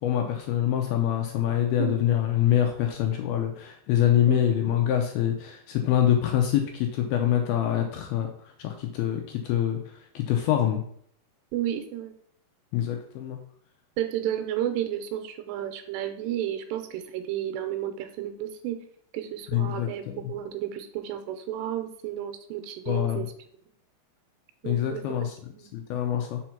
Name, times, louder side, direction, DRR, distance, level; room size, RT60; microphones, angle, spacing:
voice 1, 0.0-9.8 10.2-10.8 12.7-13.4 19.5-20.3 22.9-23.3 24.6-25.4 25.7-26.4, left 10 dB, 80° left, 3 dB, 2.3 m, -25 dB
voice 2, 11.5-12.1 14.0-18.8 19.1-20.0 20.3-23.3 24.6-25.7, right 11 dB, 85° right, 7 dB, 2.8 m, -32 dB
6.1 x 4.5 x 5.8 m, 0.63 s
omnidirectional pair, 5.0 m